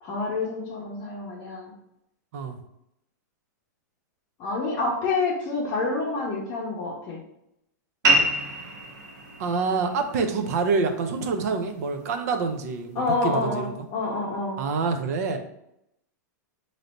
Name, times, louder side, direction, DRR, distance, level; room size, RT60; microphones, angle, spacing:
voice 1, 0.0-1.7 4.4-7.2 12.9-14.6, left 3 dB, 30° left, -5 dB, 0.7 m, -28 dB
sound 1, 8.0-13.1, right 1 dB, 80° right, 1.4 m, -29 dB
voice 2, 9.4-13.9 14.6-15.4, right 4 dB, 55° right, 6 dB, 0.5 m, -26 dB
3.2 x 2.6 x 4.1 m, 0.81 s
supercardioid pair, 160°, 10 cm